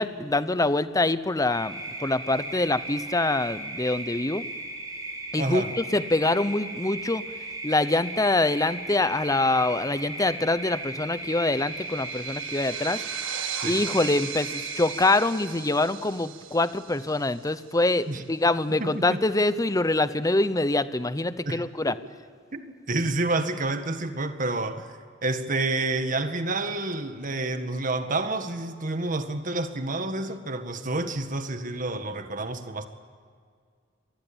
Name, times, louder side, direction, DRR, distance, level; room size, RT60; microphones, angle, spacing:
voice 1, 0.0-4.4 5.3-7.2 7.6-13.0 13.6-21.9, left 2 dB, 20° left, 14 dB, 0.8 m, -25 dB
sound 1, 1.5-15.2, right 2 dB, 20° right, 4.7 m, -37 dB
voice 2, 5.4-5.7 13.6-13.8 18.1-18.2 18.8-19.2 21.4-21.7 22.5-32.9, right 2 dB, 45° right, 8 dB, 1.8 m, -29 dB
sound 2, 11.1-17.9, right 10 dB, 80° right, 1.8 m, -38 dB
26.0 x 20.0 x 8.8 m, 2.1 s
head